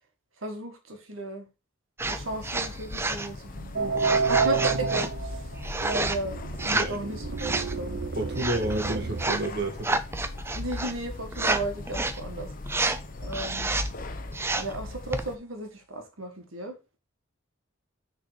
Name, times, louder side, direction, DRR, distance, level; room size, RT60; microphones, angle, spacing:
voice 1, 0.4-1.5 2.1-5.4 5.8-6.4 6.6-8.0 10.6-12.5 13.2-13.7 14.6-16.8, right 1 dB, 85° right, 1.8 m, -35 dB
sound 1, 2.0-15.3, left 2 dB, 45° left, 0.8 m, -39 dB
sound 2, 2.0-2.2 2.4-3.3 4.0-5.1 5.6-6.2 6.5-7.0 7.4-7.7 8.4-9.5 9.8-10.9 11.3-11.6 11.9-12.2 12.7-13.0 13.3-13.9 14.3-14.8 15.1-15.3, right 2 dB, 10° right, 0.5 m, -29 dB
sound 3, 3.8-9.3, right 5 dB, 70° right, 0.6 m, -30 dB
voice 2, 8.2-9.9, right 1 dB, 50° right, 1.5 m, -30 dB
6.6 x 4.0 x 5.0 m
head